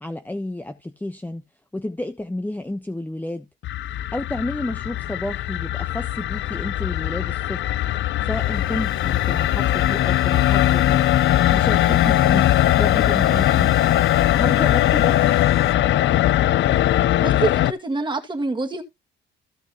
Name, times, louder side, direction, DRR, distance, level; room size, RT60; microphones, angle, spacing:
voice 1, 0.0-1.4 1.7-3.5 3.9-11.0 11.3-13.8 14.3-15.2, left 1 dB, 10° left, 1.0 m, -31 dB
sound 1, 3.6-17.7, left 13 dB, 70° left, 0.5 m, -20 dB
sound 2, 8.3-16.3, left 5 dB, 50° left, 2.2 m, -43 dB
voice 2, 17.2-18.8, right 3 dB, 25° right, 2.2 m, -26 dB
15.5 x 6.0 x 3.0 m
cardioid pair, 90°, 20 cm